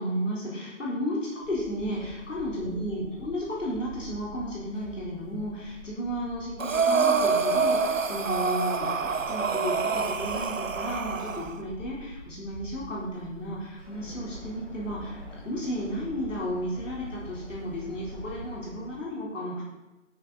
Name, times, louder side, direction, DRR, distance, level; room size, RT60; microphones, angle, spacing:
voice 1, 0.0-19.6, equal, 70° left, -6 dB, 4.1 m, -33 dB
sound 1, 1.4-18.7, right 1 dB, ahead, 1.5 m, -46 dB
Breathing, 6.6-11.5, right 5 dB, 75° right, 1.0 m, -26 dB
sound 2, 13.9-19.0, left 2 dB, 50° left, 2.3 m, -46 dB
13.0 x 9.1 x 4.2 m, 1.1 s
figure-of-eight pair, 170°, 39 cm